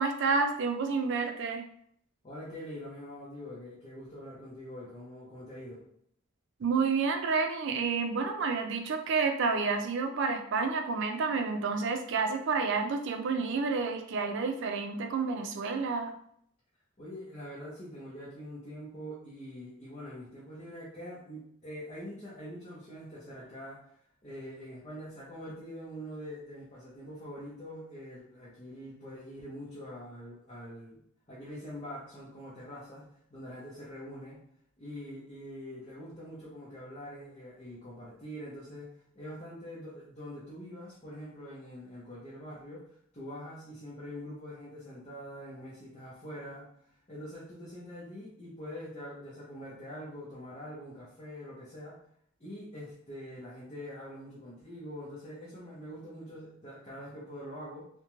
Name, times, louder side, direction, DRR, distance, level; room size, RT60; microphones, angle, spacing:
voice 1, 0.0-1.6 6.6-16.1, right 4 dB, 60° right, 5 dB, 0.4 m, -29 dB
voice 2, 2.2-5.9 17.0-23.8 24.2-31.0 31.3-34.4 34.8-38.9 39.1-42.9 43.1-46.7 47.1-52.0 52.4-57.9, equal, 30° left, -8 dB, 0.6 m, -44 dB
2.4 x 2.1 x 2.9 m, 0.67 s
head